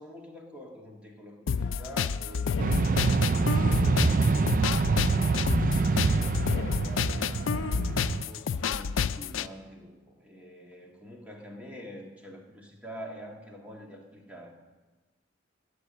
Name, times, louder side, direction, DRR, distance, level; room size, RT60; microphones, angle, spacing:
voice 1, 0.0-14.5, equal, 5° right, 0 dB, 1.7 m, -46 dB
sound 1, 1.5-9.5, left 6 dB, 85° left, 0.4 m, -30 dB
sound 2, 2.6-8.2, right 4 dB, 45° right, 0.4 m, -26 dB
13.0 x 6.9 x 9.8 m, 1.3 s
head